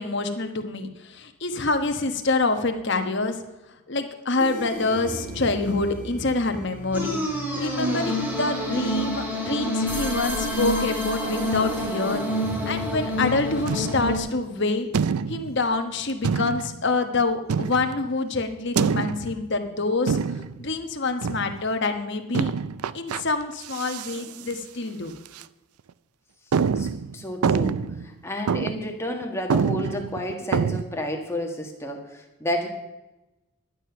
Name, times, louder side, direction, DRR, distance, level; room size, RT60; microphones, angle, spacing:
voice 1, 0.0-3.4 3.9-12.2 12.7-14.9 15.3-20.2 20.6-22.5 22.9-25.1, left 3 dB, 50° left, 6 dB, 1.2 m, -26 dB
sound 1, 4.4-14.2, equal, 10° right, 2.0 m, -28 dB
sound 2, 13.7-14.2 14.9-15.6 16.2-16.8 17.5-18.1 18.8-19.4 20.1-20.6 21.2-21.6 22.3-23.2 23.6-24.2 24.5-24.6 25.3-25.4 25.9-26.0 26.5-28.1 28.5-28.9 29.2-29.3 29.5-30.8, right 6 dB, 85° right, 0.4 m, -26 dB
voice 2, 27.1-27.8 28.0-32.7, left 1 dB, 10° left, 2 dB, 1.5 m, -31 dB
11.5 x 9.3 x 5.8 m, 1.0 s
head